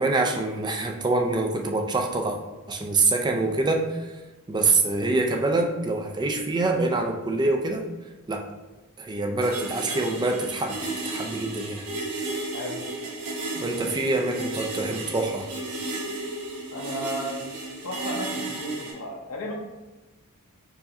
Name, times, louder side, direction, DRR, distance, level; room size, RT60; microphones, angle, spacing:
voice 1, 0.0-2.4 2.7-4.2 4.5-7.9 8.3-8.5 9.0-10.8 11.0-11.8 13.6-15.5, right 3 dB, 20° right, 3 dB, 0.4 m, -25 dB
sound 1, 9.4-18.9, right 2 dB, 85° right, 1.2 m, -34 dB
voice 2, 16.7-17.4 17.8-19.5, equal, 70° left, 0 dB, 0.8 m, -33 dB
4.7 x 2.6 x 4.1 m, 1.1 s
head